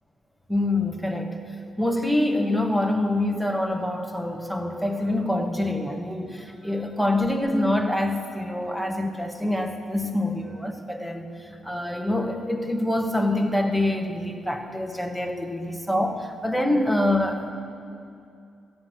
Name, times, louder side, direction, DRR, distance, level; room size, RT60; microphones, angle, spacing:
voice 1, 0.5-1.4 1.8-17.5, left 1 dB, ahead, 4 dB, 1.4 m, -25 dB
14.0 x 9.5 x 7.7 m, 2.5 s
cardioid pair, 90°, 0 cm